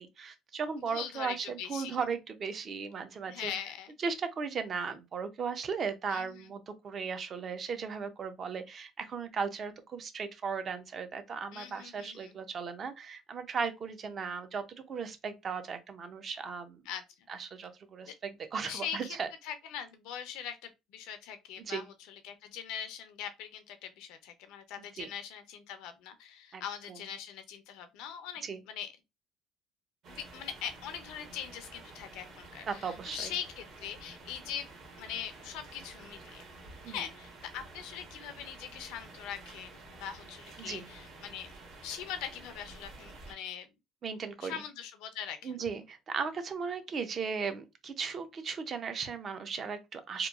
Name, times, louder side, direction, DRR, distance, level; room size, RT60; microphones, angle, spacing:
voice 1, 0.0-3.5 4.0-16.8 17.3-19.3 21.6-21.9 25.0-25.1 26.5-26.6 26.9-27.0 28.4-28.6 32.7-33.3 36.8-37.0 40.6-40.8 44.0-44.6 45.4-50.3, right 5 dB, 35° right, 0.4 m, -36 dB
voice 2, 0.8-2.0 3.3-3.9 6.1-6.5 11.5-12.3 16.9-17.3 18.1-18.2 18.7-19.2 19.4-28.9 30.1-34.7 35.0-36.5 36.9-41.5 41.8-43.7 44.4-45.6, left 9 dB, 85° left, 0.5 m, -42 dB
sound 1, 30.0-43.3, right 2 dB, 55° right, 0.9 m, -51 dB
2.9 x 2.2 x 2.3 m
cardioid pair, 150°, 0 cm